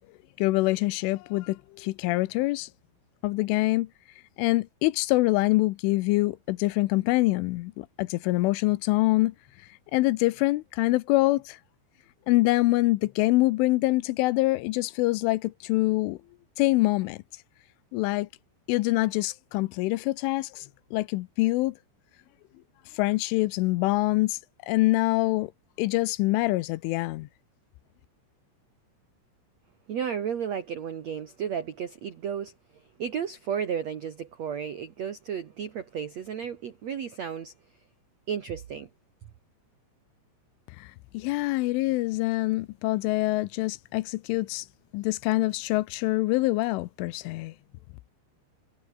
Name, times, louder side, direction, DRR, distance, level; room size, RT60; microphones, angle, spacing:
voice 1, 0.4-2.7 3.2-3.9 4.4-9.3 9.9-11.6 12.3-16.2 16.6-17.2 17.9-18.3 18.7-20.7 20.9-21.8 23.0-24.4 24.7-25.5 25.8-27.3 40.8-40.9 41.1-44.7 44.9-47.5, left 20 dB, 85° left, 3.3 m, -25 dB
voice 2, 29.9-32.5 33.0-37.5 38.3-38.9, right 8 dB, 80° right, 1.5 m, -33 dB
omnidirectional pair, 5.6 m